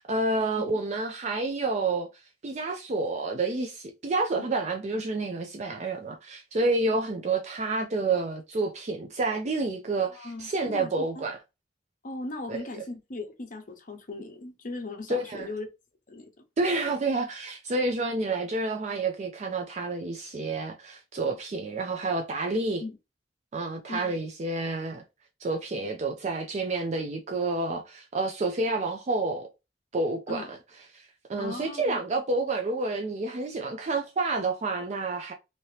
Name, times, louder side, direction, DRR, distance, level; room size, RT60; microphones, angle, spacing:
voice 1, 0.0-2.1 2.4-11.4 12.5-12.6 15.1-15.5 16.6-22.8 23.5-25.0 25.4-29.5 29.9-30.6 30.9-31.0 31.3-35.3, right 3 dB, 40° right, 0.4 m, -29 dB
voice 2, 10.0-11.2 12.0-15.7 16.1-16.3 22.8-23.0 23.9-24.2 30.3-30.5 31.4-32.0, left 2 dB, 50° left, 0.7 m, -38 dB
2.8 x 2.8 x 3.1 m
head